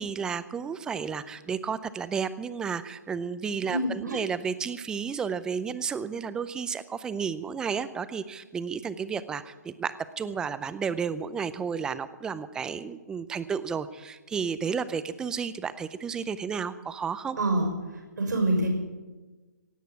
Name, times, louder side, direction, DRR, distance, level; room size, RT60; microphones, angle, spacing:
voice 1, 0.0-17.4, right 6 dB, 5° right, 14 dB, 0.5 m, -32 dB
voice 2, 3.7-4.2 17.4-17.7 18.2-18.7, right 1 dB, 85° right, 3 dB, 6.0 m, -26 dB
17.5 x 8.3 x 9.4 m, 1.2 s
hypercardioid pair, 150°, 10 cm